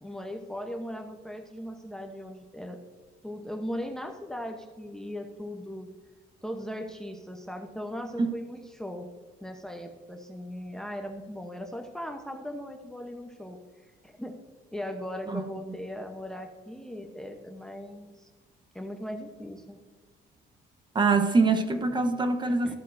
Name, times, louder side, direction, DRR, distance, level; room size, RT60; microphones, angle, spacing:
voice 1, 0.0-2.8 3.2-5.9 6.4-9.1 9.4-13.6 14.0-14.4 14.7-18.3 18.7-19.8 22.5-22.8, equal, 5° left, 5 dB, 0.8 m, -38 dB
voice 2, 20.9-22.8, right 3 dB, 25° right, 7 dB, 1.0 m, -24 dB
14.0 x 8.2 x 2.6 m, 1.4 s
cardioid pair, 110°, 17 cm